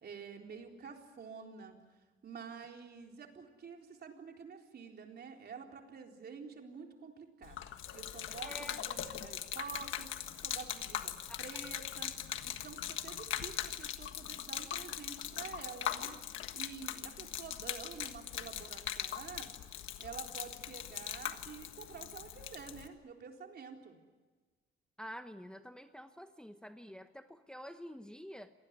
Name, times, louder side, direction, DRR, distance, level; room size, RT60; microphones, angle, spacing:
voice 1, 0.0-1.8 2.2-7.6 7.9-10.1 10.4-11.1 11.4-12.1 12.4-16.2 16.5-19.5 20.0-24.0, right 6 dB, 55° right, 2 dB, 4.1 m, -48 dB
Gurgling / Liquid, 7.4-22.9, left 11 dB, 80° left, 1.5 m, -41 dB
voice 2, 8.4-8.8 11.3-11.4 25.0-28.5, equal, 5° left, 8 dB, 1.1 m, -48 dB
27.0 x 19.5 x 9.6 m, 1.3 s
cardioid pair, 90°, 20 cm